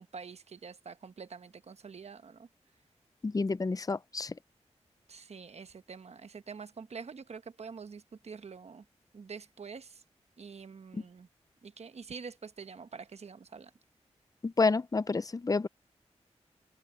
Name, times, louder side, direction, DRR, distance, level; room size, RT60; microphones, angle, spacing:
voice 1, 0.0-2.5 5.1-8.8 9.1-10.0 10.4-11.3 11.6-13.7, right 5 dB, 65° right, 1.0 m, -46 dB
voice 2, 3.2-4.3 10.9-11.0 14.4-15.7, left 3 dB, 30° left, 0.5 m, -29 dB
cardioid pair, 55°, 12 cm